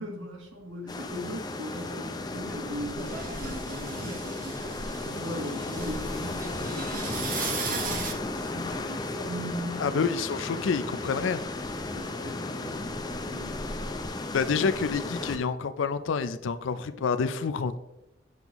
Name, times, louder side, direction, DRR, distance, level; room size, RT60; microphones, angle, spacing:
voice 1, 0.0-4.7 5.0-10.0 10.6-10.7 11.9-13.6, equal, 85° right, 1.4 m, -39 dB
sound 1, 0.9-15.4, left 2 dB, 20° left, 0.5 m, -35 dB
sound 2, 3.0-8.1, right 4 dB, 45° right, 0.9 m, -37 dB
voice 2, 9.8-11.4 14.3-17.8, left 5 dB, 85° left, 0.4 m, -28 dB
7.7 x 5.4 x 3.0 m
head